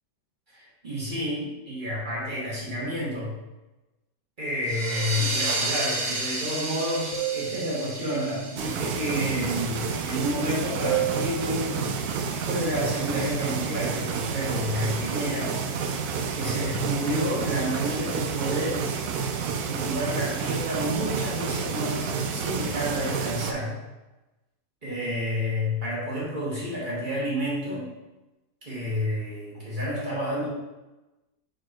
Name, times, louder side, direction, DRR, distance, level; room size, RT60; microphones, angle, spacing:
voice 1, 0.5-3.4 4.4-11.9 12.2-15.9 16.3-18.9 19.6-23.8 24.8-28.0 28.7-30.5, equal, 25° right, -7 dB, 2.2 m, -30 dB
sound 1, 4.6-10.0, right 2 dB, 50° right, 1.2 m, -32 dB
sound 2, 4.9-5.5 7.1-8.2 10.8-12.1, right 9 dB, 60° left, 1.3 m, -32 dB
sound 3, 8.6-23.5, right 6 dB, 70° right, 1.0 m, -30 dB
5.2 x 4.5 x 4.5 m, 1.1 s
omnidirectional pair, 1.9 m